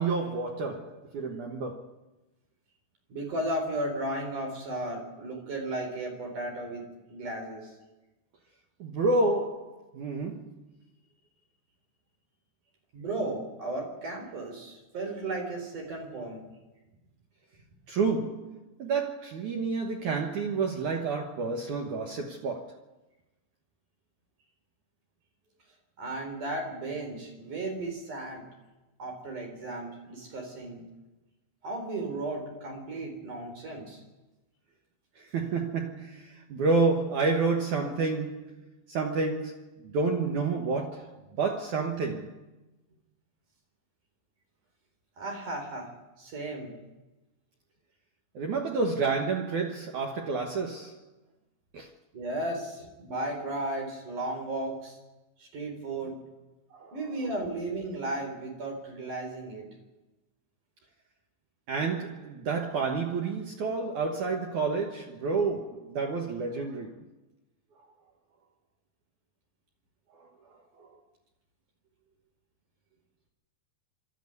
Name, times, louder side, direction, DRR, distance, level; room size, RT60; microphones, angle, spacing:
voice 1, 0.0-1.9 8.8-10.6 17.9-22.8 35.2-42.3 48.4-51.0 51.7-51.9 56.7-57.3 61.7-67.0 70.2-70.3 70.8-70.9, right 4 dB, 65° right, 1.9 m, -30 dB
voice 2, 3.1-7.7 12.9-16.5 26.0-28.4 29.0-30.8 31.6-34.0 45.2-45.9 46.2-46.7 52.1-55.0 55.4-56.2 56.9-59.7, right 2 dB, 45° right, 5.3 m, -35 dB
23.5 x 13.0 x 9.6 m
omnidirectional pair, 5.3 m